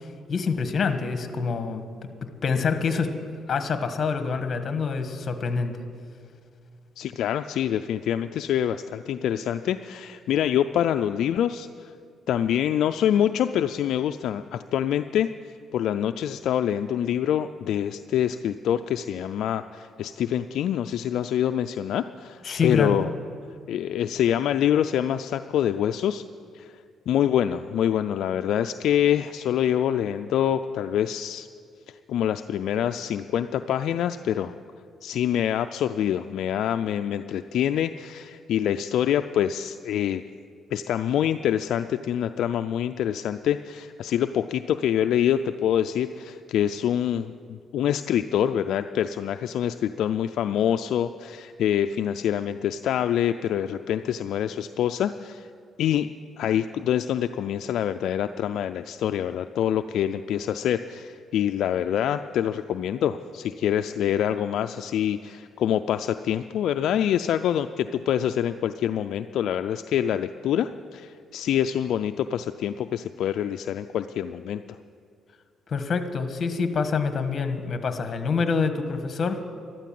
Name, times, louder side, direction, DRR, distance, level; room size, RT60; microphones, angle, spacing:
voice 1, 0.3-1.8 2.4-3.2 3.5-5.8 22.4-23.0 75.7-79.4, left 5 dB, 45° left, 8 dB, 1.4 m, -26 dB
voice 2, 7.0-11.9 12.3-15.3 15.7-23.1 23.7-26.2 26.5-26.7 27.1-31.5 32.1-34.5 35.0-40.2 40.7-55.5 55.8-56.1 56.4-74.6, left 10 dB, 75° left, 8 dB, 0.4 m, -25 dB
13.0 x 12.5 x 7.6 m, 2.3 s
cardioid pair, 90°, 0 cm